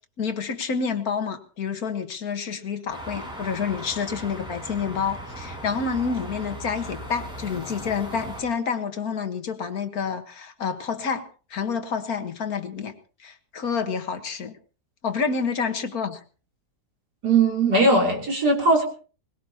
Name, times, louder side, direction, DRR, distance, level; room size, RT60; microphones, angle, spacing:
voice 1, 0.2-11.3 11.5-12.9 13.2-14.6 15.0-16.2, left 5 dB, 65° left, 8 dB, 1.9 m, -28 dB
sound 1, 2.9-8.4, equal, 5° right, 5.8 m, -38 dB
voice 2, 17.2-18.8, right 2 dB, 90° right, 1 dB, 3.9 m, -19 dB
21.5 x 20.0 x 2.9 m, 0.38 s
omnidirectional pair, 1.7 m